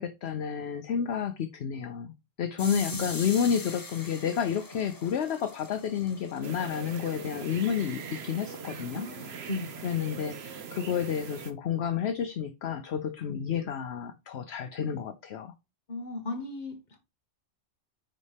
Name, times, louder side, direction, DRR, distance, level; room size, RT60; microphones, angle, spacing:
voice 1, 0.0-9.0 9.8-15.5, left 8 dB, 65° left, 0.9 m, -30 dB
voice 2, 2.6-3.1 8.9-9.8 13.3-13.4 15.9-17.0, left 1 dB, 40° left, 1.5 m, -36 dB
sound 1, 2.6-8.2, left 3 dB, 20° left, 0.7 m, -43 dB
sound 2, 6.4-11.5, right 6 dB, 60° right, 1.1 m, -41 dB
9.6 x 4.2 x 3.4 m
omnidirectional pair, 1.2 m